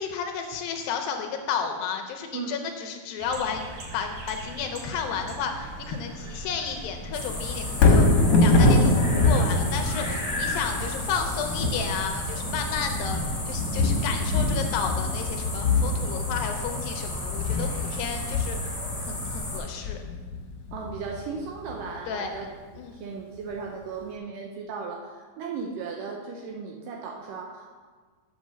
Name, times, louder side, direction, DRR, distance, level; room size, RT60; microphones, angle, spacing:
voice 1, 0.0-3.7 3.9-8.9 9.2-18.6 19.0-20.0 22.1-22.3 22.8-23.0, left 6 dB, 80° left, 4 dB, 2.3 m, -32 dB
sound 1, 3.2-18.4, right 1 dB, 60° right, 1.7 m, -41 dB
sound 2, 7.1-19.6, left 2 dB, 15° left, 1.1 m, -33 dB
Thunder, 7.7-21.9 22.4-22.5, left 2 dB, 65° left, 1.9 m, -24 dB
voice 2, 20.7-22.5 22.9-27.9, right 5 dB, 80° right, 1 dB, 2.0 m, -36 dB
7.3 x 6.1 x 6.3 m, 1.4 s
omnidirectional pair, 4.5 m